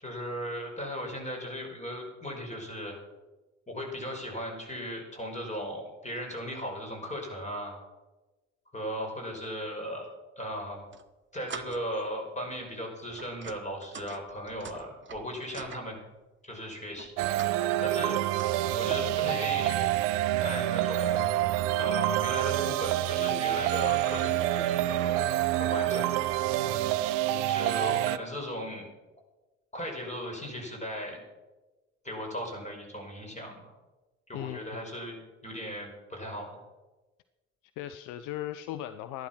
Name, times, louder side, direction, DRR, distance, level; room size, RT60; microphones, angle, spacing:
voice 1, 0.0-3.0 3.7-7.7 8.7-10.1 10.4-10.8 11.3-16.0 16.4-17.5 17.8-18.2 18.7-19.8 20.4-21.4 21.8-25.3 25.6-26.2 27.5-28.9 29.7-31.2 32.0-33.7 34.3-36.6, equal, 20° left, 1 dB, 5.5 m, -37 dB
sound 1, 10.7-11.0 11.5-12.0 12.4-12.6 13.1-15.9 17.0-17.6 17.9-18.4, right 6 dB, 35° right, 1.1 m, -45 dB
sound 2, 17.2-28.2, right 14 dB, 70° right, 0.6 m, -27 dB
voice 2, 34.3-34.8 37.8-39.3, left 12 dB, 65° left, 11 dB, 0.7 m, -37 dB
13.0 x 11.5 x 5.9 m, 1.1 s
figure-of-eight pair, 45°, 33 cm